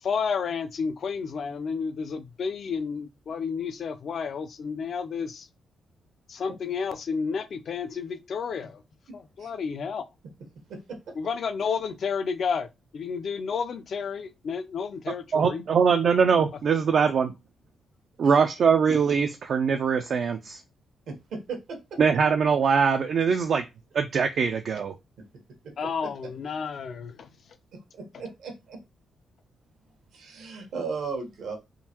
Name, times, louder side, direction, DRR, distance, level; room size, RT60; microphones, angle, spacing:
voice 1, 0.0-5.5 6.3-8.8 9.1-10.1 11.2-12.7 12.9-15.6 25.8-27.3, left 6 dB, 55° left, 0.5 m, -31 dB
voice 2, 15.3-17.3 18.2-20.6 22.0-23.6 23.9-24.9, right 6 dB, 55° right, 0.4 m, -22 dB
voice 3, 27.7-28.8 30.1-31.6, right 5 dB, 80° right, 1.1 m, -35 dB
3.6 x 2.6 x 2.9 m
cardioid pair, 115°, 0 cm